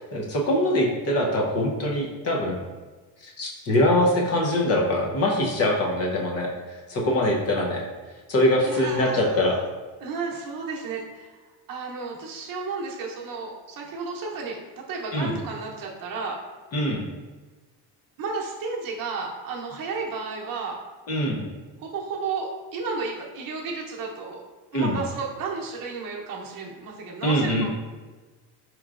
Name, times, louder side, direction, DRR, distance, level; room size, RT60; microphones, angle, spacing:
voice 1, 0.1-2.6 3.2-7.8 8.3-9.6 15.1-15.3 16.7-17.0 21.1-21.5 24.7-25.0 27.2-27.7, left 1 dB, 35° left, -1 dB, 0.7 m, -23 dB
voice 2, 8.6-9.6 10.0-11.4 11.7-14.6 14.9-16.4 18.2-20.8 21.8-24.4 24.7-27.7, right 4 dB, 55° right, -2 dB, 0.8 m, -32 dB
4.8 x 3.0 x 2.4 m, 1.3 s
cardioid pair, 135°, 41 cm